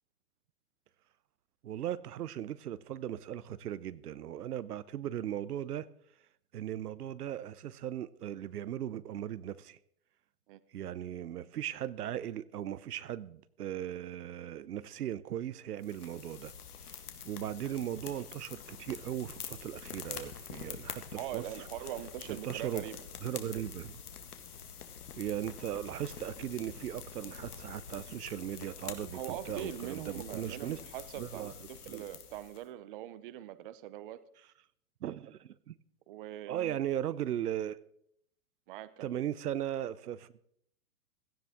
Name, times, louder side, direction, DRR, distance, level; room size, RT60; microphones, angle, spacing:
voice 1, 1.6-5.9 6.5-9.8 10.7-16.5 17.2-21.0 21.3-21.4 22.3-22.8 23.2-24.0 25.2-30.8 31.2-31.5 31.9-32.0 35.0-35.7 36.5-37.8 39.0-40.5, right 11 dB, 85° right, 0.8 m, -38 dB
sound 1, 15.8-32.6, left 7 dB, 80° left, 2.0 m, -46 dB
voice 2, 21.2-23.0 29.1-34.2 36.1-36.8 38.7-39.1, right 13 dB, 35° right, 0.7 m, -42 dB
16.5 x 13.5 x 3.6 m
hypercardioid pair, 150°, 45 cm